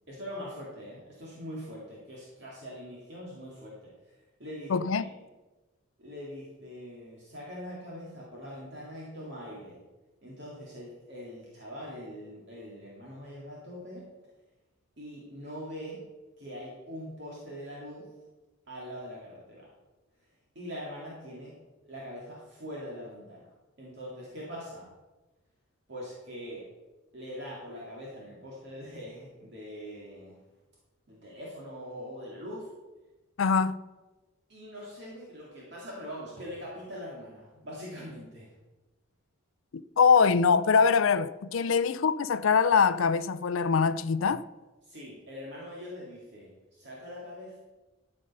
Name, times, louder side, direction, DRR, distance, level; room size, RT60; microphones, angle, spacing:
voice 1, 0.1-4.1 4.4-5.1 6.0-9.8 10.2-14.1 15.0-16.0 16.4-18.1 18.7-19.7 20.6-21.5 21.9-24.9 25.9-26.6 27.1-30.4 31.1-32.7 34.5-38.5 41.7-41.8 44.8-47.6, equal, 55° right, 2.3 m, -42 dB
voice 2, 4.7-5.1 33.4-33.8 40.0-44.4, left 5 dB, 75° left, 0.4 m, -23 dB
12.5 x 5.4 x 5.5 m
head